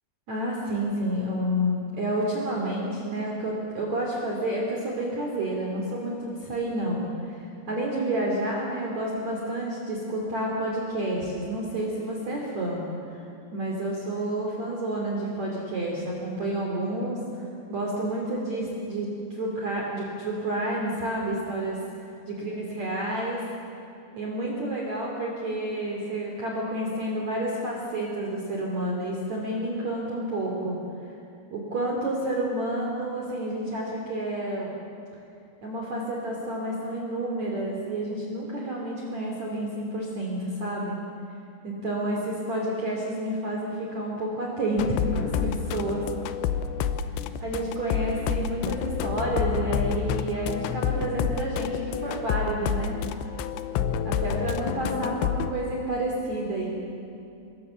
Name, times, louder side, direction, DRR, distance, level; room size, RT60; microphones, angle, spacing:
voice 1, 0.3-12.8 13.1-13.2 13.5-17.4 17.7-21.8 22.3-23.4 24.1-30.8 31.5-34.7 35.6-41.0 41.6-46.0 47.4-53.0 54.0-56.7, right 1 dB, 40° right, -2 dB, 3.4 m, -30 dB
sound 1, 44.8-55.5, left 8 dB, 75° left, 2.8 m, -29 dB
26.5 x 21.5 x 7.1 m, 2.7 s
omnidirectional pair, 5.5 m